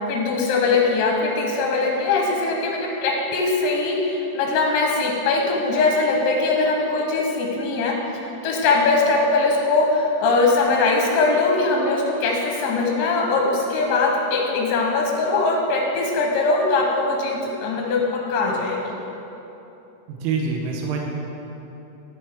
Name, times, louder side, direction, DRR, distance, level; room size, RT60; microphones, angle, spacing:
voice 1, 0.0-18.8, left 3 dB, 75° left, -1 dB, 3.0 m, -21 dB
voice 2, 20.1-21.0, right 5 dB, 80° right, 0 dB, 3.2 m, -25 dB
11.0 x 9.2 x 3.5 m, 3.0 s
omnidirectional pair, 5.6 m